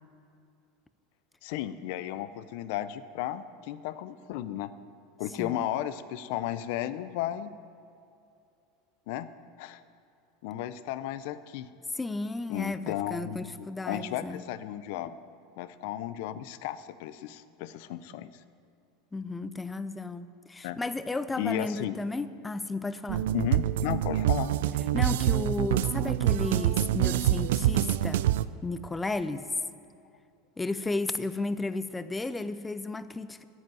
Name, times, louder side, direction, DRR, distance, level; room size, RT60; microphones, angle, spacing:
voice 1, 1.4-4.7 5.2-7.5 9.1-9.3 9.6-9.8 10.4-11.7 12.5-15.2 15.6-18.3 20.6-20.8 21.4-22.0 23.3-24.5, left 12 dB, 65° left, 14 dB, 0.5 m, -34 dB
voice 2, 11.9-14.4 19.1-23.2 24.9-28.3 28.6-29.5 30.6-33.4, left 3 dB, 10° left, 13 dB, 0.4 m, -33 dB
sound 1, 23.1-28.4, right 12 dB, 85° right, 0.3 m, -26 dB
9.5 x 7.6 x 9.4 m, 2.5 s
supercardioid pair, 145°, 0 cm